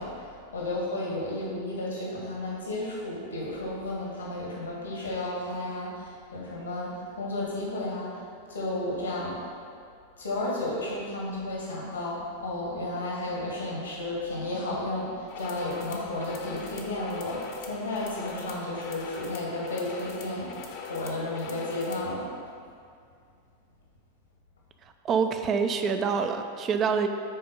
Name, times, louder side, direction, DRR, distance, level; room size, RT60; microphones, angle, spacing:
voice 1, 0.0-9.5 10.2-22.3, left 1 dB, 80° left, -4 dB, 2.0 m, -33 dB
sound 1, 15.3-22.1, left 5 dB, 45° left, 1.0 m, -42 dB
voice 2, 25.0-27.1, right 6 dB, 30° right, 7 dB, 0.6 m, -26 dB
10.0 x 4.4 x 5.4 m, 2.3 s
figure-of-eight pair, 90°, 0 cm